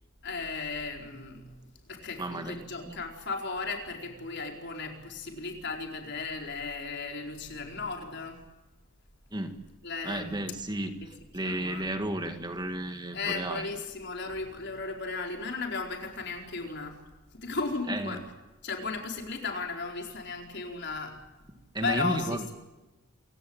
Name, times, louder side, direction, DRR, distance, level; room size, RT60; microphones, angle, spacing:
voice 1, 0.2-1.6 1.9-8.4 9.8-10.4 11.4-11.8 13.1-17.0 17.3-18.2 18.6-21.2 21.8-22.5, left 4 dB, 55° left, 2 dB, 4.6 m, -35 dB
voice 2, 2.2-3.0 9.3-9.6 10.0-13.7 17.9-18.2 21.7-22.5, right 1 dB, 20° right, 6 dB, 1.8 m, -33 dB
27.5 x 17.0 x 8.8 m, 1.1 s
head